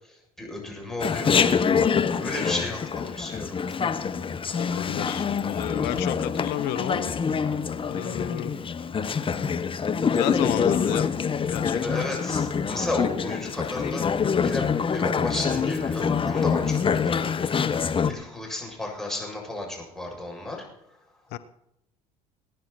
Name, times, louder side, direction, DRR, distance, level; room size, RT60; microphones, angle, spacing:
voice 1, 0.0-1.6 2.2-3.6 11.7-14.1 14.4-17.4 18.1-20.6, left 2 dB, ahead, -1 dB, 7.3 m, -33 dB
Chatter, 1.0-18.1, left 6 dB, 30° left, 1.1 m, -25 dB
voice 2, 4.5-6.1 6.4-7.1 7.9-8.5 10.1-11.1 11.5-11.8 21.3-21.4, left 13 dB, 65° left, 13 dB, 0.9 m, -31 dB
20.0 x 10.5 x 4.4 m, 0.79 s
hypercardioid pair, 70°, 19 cm